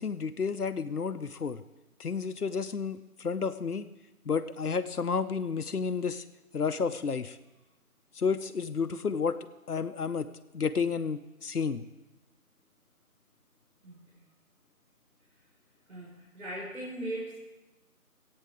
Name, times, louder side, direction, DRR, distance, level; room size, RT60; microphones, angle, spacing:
voice 1, 0.0-1.6 2.0-3.9 4.3-6.2 6.5-7.4 8.2-9.4 9.7-10.3 10.5-11.8, left 5 dB, 85° left, 9 dB, 0.8 m, -31 dB
voice 2, 13.8-14.2 15.9-17.4, right 1 dB, 65° right, -5 dB, 4.1 m, -39 dB
25.5 x 8.8 x 3.5 m, 1.0 s
figure-of-eight pair, 180°, 44 cm